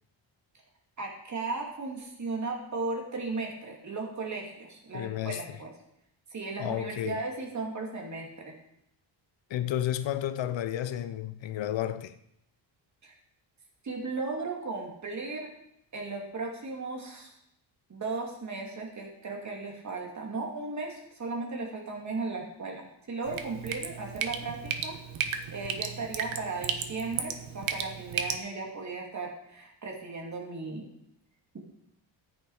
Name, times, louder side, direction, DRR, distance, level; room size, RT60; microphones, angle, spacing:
voice 1, 1.0-5.7 6.3-8.5 13.0-13.1 13.8-15.5 15.9-17.3 17.9-24.9 25.5-30.8, right 3 dB, 35° right, 2.8 m, -36 dB
voice 2, 4.9-5.6 6.6-7.2 9.5-12.1, left 11 dB, 65° left, 0.9 m, -32 dB
Drip, 23.2-28.4, right 7 dB, 85° right, 1.3 m, -34 dB
14.0 x 9.3 x 4.9 m
cardioid pair, 155°, 48 cm